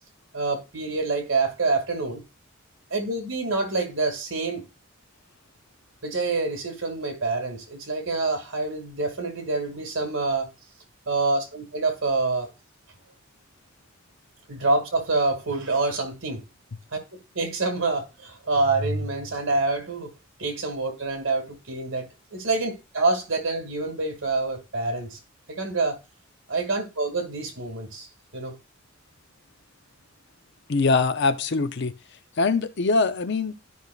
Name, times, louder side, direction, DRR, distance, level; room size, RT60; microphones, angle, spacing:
voice 1, 0.3-2.2 2.9-4.6 6.0-10.5 11.1-12.5 14.5-16.4 16.9-17.0 17.3-20.1 20.4-25.2 25.5-26.0 26.5-28.1 28.3-28.6, right 3 dB, 65° right, 2.2 m, -26 dB
voice 2, 30.7-31.9 32.4-33.5, left 3 dB, 55° left, 0.6 m, -23 dB
12.5 x 5.5 x 2.4 m
head